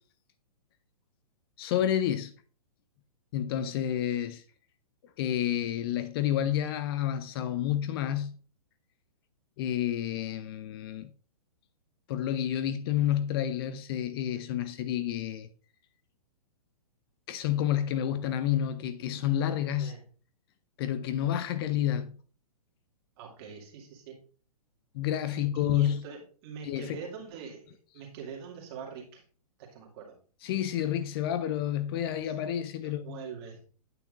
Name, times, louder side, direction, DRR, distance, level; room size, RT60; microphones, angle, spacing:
voice 1, 1.6-2.3 3.3-4.4 5.2-8.4 9.6-11.1 12.1-15.5 17.3-19.9 20.8-22.1 24.9-26.0 26.6-27.0 30.4-33.2, left 11 dB, 40° left, 0.5 m, -29 dB
voice 2, 23.2-24.2 25.3-27.6 27.9-29.2 29.6-30.2 32.3-32.4 32.8-33.6, right 6 dB, 40° right, 2.3 m, -44 dB
9.1 x 5.8 x 2.5 m
hypercardioid pair, 130°, 20 cm